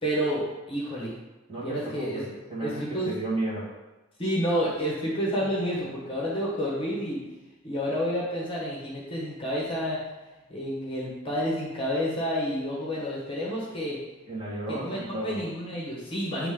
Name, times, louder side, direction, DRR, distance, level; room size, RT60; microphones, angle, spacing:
voice 1, 0.0-1.1 1.6-2.2 2.6-3.1 4.2-7.2 7.6-10.0 10.5-14.0 14.7-16.5, equal, 25° left, -5 dB, 1.3 m, -29 dB
voice 2, 1.5-3.7 14.3-15.4, right 2 dB, 25° right, -8 dB, 1.9 m, -33 dB
8.4 x 3.4 x 3.8 m, 1.1 s
head